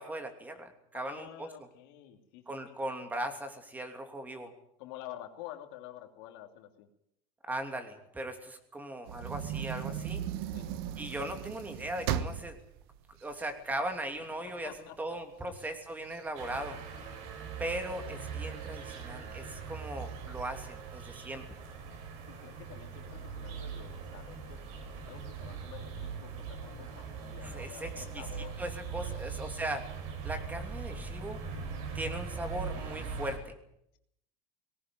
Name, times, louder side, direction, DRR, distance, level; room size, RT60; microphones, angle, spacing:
voice 1, 0.0-1.5 2.5-4.5 7.5-10.2 11.0-12.6 13.2-14.7 15.0-16.8 17.6-21.4 27.4-28.2 28.6-29.9 30.2-31.4 31.9-33.5, right 1 dB, 15° right, 6 dB, 2.9 m, -38 dB
voice 2, 0.9-2.8 4.8-6.9 10.5-10.7 14.4-15.0 15.5-15.6 22.3-24.6 25.0-28.6 28.8-29.3 29.6-29.7, left 13 dB, 85° left, 5 dB, 2.9 m, -49 dB
sound 1, 9.1-14.3 14.7-14.8 15.2-17.2 17.8-18.3 18.9-19.0 19.3-19.4 19.9-20.5, right 10 dB, 85° right, 1.3 m, -37 dB
sound 2, 16.3-33.4, right 5 dB, 65° right, 5.5 m, -41 dB
19.5 x 17.0 x 9.3 m, 0.77 s
cardioid pair, 135°, 12 cm